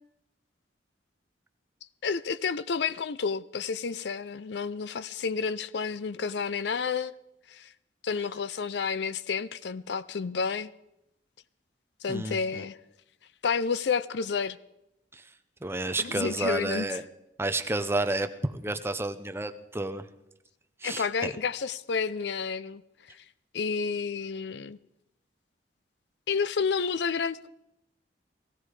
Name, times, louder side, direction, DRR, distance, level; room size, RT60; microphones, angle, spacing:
voice 1, 2.0-7.2 7.5-7.7 8.0-10.7 12.0-12.8 13.4-14.6 16.0-17.0 20.8-22.8 23.1-23.2 23.5-24.8 26.3-27.5, left 5 dB, 65° left, 0.5 m, -30 dB
voice 2, 12.1-12.6 15.1-15.2 15.6-17.0 17.4-20.0 20.8-21.3, right 2 dB, 15° right, 0.7 m, -31 dB
18.0 x 15.5 x 4.8 m
head